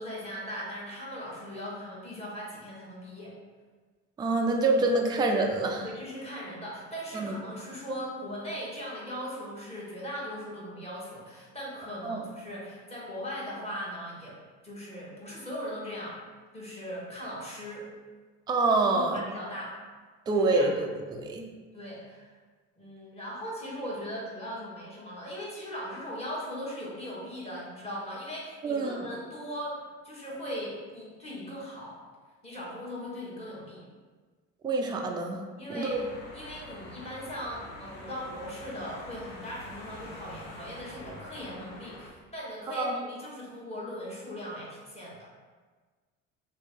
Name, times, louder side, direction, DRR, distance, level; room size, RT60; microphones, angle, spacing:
voice 1, 0.0-3.3 4.7-4.9 5.8-14.4 14.6-16.2 16.5-17.9 18.9-19.7 20.3-20.7 21.7-22.3 22.8-32.0 32.4-33.9 35.6-36.0 36.3-45.3, equal, 15° left, -6 dB, 1.3 m, -39 dB
voice 2, 4.2-5.9 7.1-7.4 12.0-12.2 18.5-19.2 20.3-21.4 28.6-29.0 34.6-35.4 35.7-36.0 42.8-43.0, right 2 dB, 10° right, 2 dB, 0.3 m, -26 dB
sound 1, 35.9-42.1, left 1 dB, 60° left, 0.9 m, -46 dB
3.0 x 2.5 x 3.4 m, 1.4 s
hypercardioid pair, 70°, 38 cm